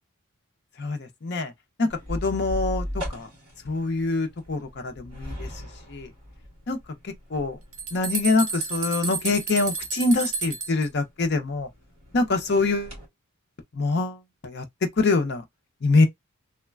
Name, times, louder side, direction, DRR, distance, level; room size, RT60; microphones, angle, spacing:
voice 1, 0.8-1.5 1.8-3.3 3.6-5.5 5.9-6.1 6.7-6.8 7.0-7.6 7.9-11.7 12.1-13.0 13.7-15.4 15.8-16.1, left 3 dB, 50° left, 0.5 m, -25 dB
sound 1, 1.9-13.1, equal, 25° right, 1.5 m, -39 dB
sound 2, 7.3-10.9, right 4 dB, 65° right, 0.8 m, -31 dB
3.1 x 2.1 x 2.3 m
head